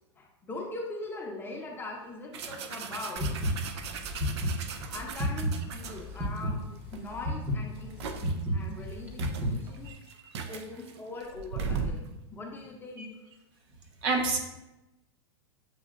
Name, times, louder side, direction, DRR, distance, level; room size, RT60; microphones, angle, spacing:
voice 1, 0.2-3.3 4.9-6.6 6.9-8.2 8.5-9.9 10.5-13.1, left 2 dB, 15° left, -1 dB, 0.7 m, -41 dB
sound 1, 2.3-6.4 6.9-7.1 7.5-8.4 8.9-9.0 9.2-12.1, right 5 dB, 75° right, 0.5 m, -38 dB
sound 2, 3.2-9.9, equal, 15° right, 0.9 m, -32 dB
voice 2, 14.0-14.4, right 3 dB, 55° right, 3 dB, 0.9 m, -27 dB
7.4 x 2.7 x 2.5 m, 0.96 s
hypercardioid pair, 130°, 14 cm